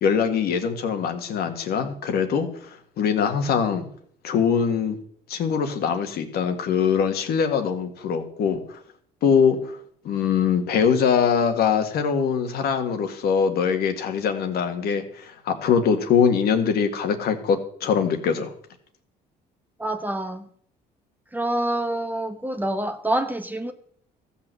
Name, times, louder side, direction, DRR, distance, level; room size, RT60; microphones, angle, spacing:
voice 1, 0.0-2.7 3.0-3.9 4.2-5.0 5.3-8.8 9.2-9.8 10.0-18.5, left 6 dB, 70° left, 1.8 m, -22 dB
voice 2, 19.8-20.5 21.3-23.7, right 1 dB, 10° right, 1.0 m, -26 dB
14.5 x 5.8 x 7.6 m
cardioid pair, 110°, 17 cm